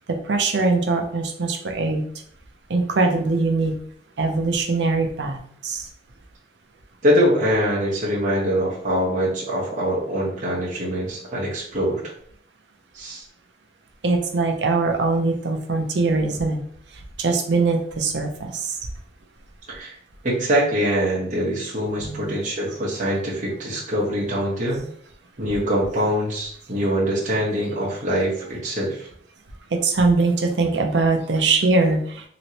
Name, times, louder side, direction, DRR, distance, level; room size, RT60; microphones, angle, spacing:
voice 1, 0.1-2.0 2.7-3.8 4.2-5.8 14.0-16.6 17.2-18.7 22.0-22.4 29.7-32.0, right 3 dB, 75° right, 4 dB, 0.6 m, -22 dB
voice 2, 7.0-12.0 12.9-13.2 19.7-19.9 20.2-24.8 25.4-29.1, equal, 45° right, -6 dB, 1.1 m, -23 dB
3.0 x 3.0 x 2.8 m, 0.62 s
head